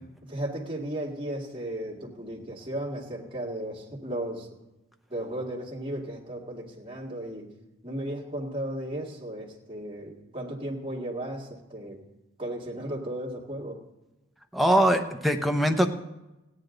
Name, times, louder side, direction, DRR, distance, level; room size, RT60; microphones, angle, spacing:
voice 1, 0.2-4.5 5.1-7.5 7.8-12.0 12.4-13.8, right 1 dB, 25° right, -2 dB, 2.1 m, -35 dB
voice 2, 14.5-15.9, right 1 dB, ahead, 4 dB, 0.7 m, -22 dB
16.5 x 9.9 x 3.9 m, 1.0 s
head